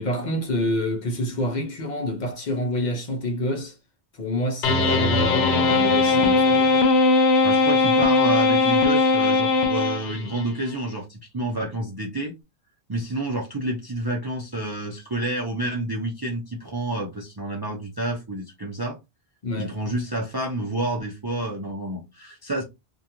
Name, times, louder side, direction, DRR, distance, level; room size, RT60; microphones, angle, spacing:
voice 1, 0.0-3.8 4.1-6.7 19.4-19.7, left 1 dB, 50° left, 0.7 m, -27 dB
sound 1, 4.6-10.4, left 3 dB, 80° left, 0.8 m, -19 dB
voice 2, 7.4-12.3 12.9-19.0 19.6-22.6, right 1 dB, 35° right, 0.4 m, -29 dB
2.4 x 2.2 x 2.8 m
omnidirectional pair, 1.1 m